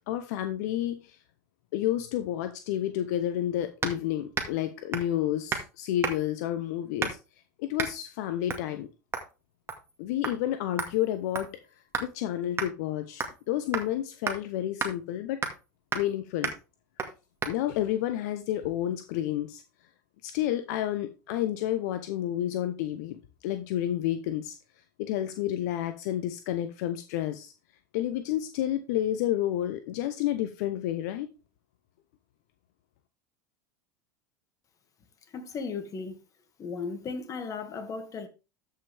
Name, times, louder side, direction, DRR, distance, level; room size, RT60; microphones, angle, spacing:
voice 1, 0.1-1.2 1.7-7.2 7.6-8.9 10.0-11.5 12.0-15.4 15.9-16.5 17.5-19.6 20.2-24.6 25.0-27.5 27.9-31.3, left 12 dB, 65° left, 0.8 m, -30 dB
sound 1, 3.8-4.0 4.3-4.6 4.9-5.2 5.5-5.7 6.0-6.4 7.0-7.3 7.8-8.0 8.5-8.7 9.1-9.3 9.7-10.0 10.2-10.4 10.8-12.1 12.6-12.7 13.2-13.4 13.7-13.9 14.3-14.4 14.8-14.9 15.4-15.6 15.9-16.1 16.4-16.6 17.0-17.1 17.4-17.5, right 5 dB, 25° right, 2.1 m, -33 dB
voice 2, 35.3-36.2 36.6-38.3, left 5 dB, 35° left, 2.1 m, -36 dB
13.5 x 5.7 x 3.5 m
hypercardioid pair, 90°, 10 cm